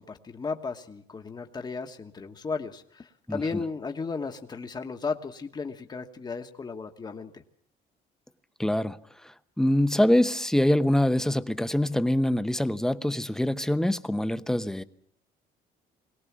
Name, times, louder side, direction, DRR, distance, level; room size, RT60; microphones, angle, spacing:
voice 1, 0.0-7.4, left 4 dB, 25° left, 1.3 m, -35 dB
voice 2, 3.3-3.6 8.6-9.0 9.2-14.8, left 1 dB, 5° left, 0.8 m, -24 dB
21.5 x 18.0 x 7.3 m
cardioid pair, 110°, 17 cm